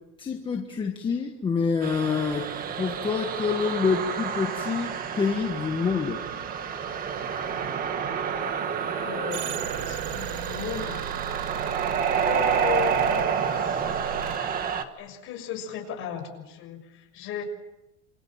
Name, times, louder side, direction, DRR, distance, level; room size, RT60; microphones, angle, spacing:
voice 1, 0.2-2.5 2.8-6.2, left 5 dB, 15° left, 3 dB, 1.4 m, -27 dB
sound 1, 1.8-14.8, right 7 dB, 25° right, 1.7 m, -29 dB
voice 2, 8.9-11.0 12.2-13.8 15.0-17.4, left 9 dB, 35° left, 4 dB, 6.5 m, -36 dB
sound 2, 9.3-13.3 13.8-14.4, right 12 dB, 85° right, 1.8 m, -37 dB
28.0 x 27.5 x 7.4 m, 0.96 s
supercardioid pair, 170°, 37 cm